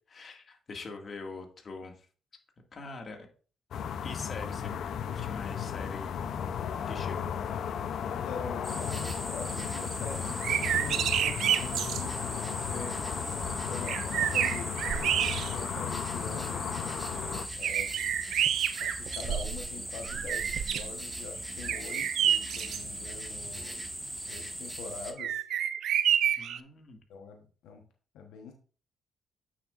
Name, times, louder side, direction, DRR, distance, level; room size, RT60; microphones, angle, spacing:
voice 1, 0.1-2.1 2.7-3.3 4.0-4.7 5.0-6.2 6.9-7.3 26.4-27.0, left 3 dB, 45° left, 3 dB, 2.0 m, -43 dB
sound 1, 3.7-17.5, left 8 dB, 70° left, 0.6 m, -35 dB
voice 2, 8.1-14.7 15.4-16.7 17.6-17.9 18.8-23.8 24.3-25.4 27.1-27.8 28.1-28.5, left 5 dB, 90° left, 3 dB, 1.1 m, -44 dB
sound 2, 8.6-25.1, right 1 dB, 5° right, 1.4 m, -39 dB
sound 3, 10.3-12.1 13.4-13.5 13.9-15.8 16.3-16.4 17.6-19.7 20.0-20.9 21.6-22.8 25.2-26.6, right 10 dB, 75° right, 0.5 m, -29 dB
8.8 x 7.2 x 2.5 m, 0.40 s
cardioid pair, 90°, 0 cm